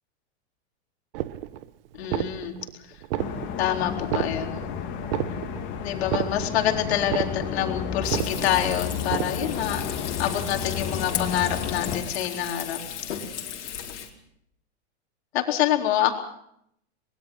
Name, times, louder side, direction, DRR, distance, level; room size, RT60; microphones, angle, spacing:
sound 1, 1.1-1.7 2.0-2.7 3.0-3.7 4.0-4.7 5.0-5.7 6.0-6.7 7.0-7.7 8.0-8.7 9.0-9.7, right 14 dB, 55° right, 1.2 m, -31 dB
voice 1, 1.9-2.6 2.9-3.0 3.6-4.5 5.8-12.8 13.1-13.2 15.3-16.1, left 11 dB, 65° left, 3 dB, 4.1 m, -26 dB
sound 2, 3.2-12.0, left 7 dB, 35° left, 3.6 m, -32 dB
Frying (food), 8.0-14.1, left 9 dB, 85° left, 4.4 m, -35 dB
24.0 x 21.5 x 5.8 m, 0.72 s
hypercardioid pair, 145°, 35 cm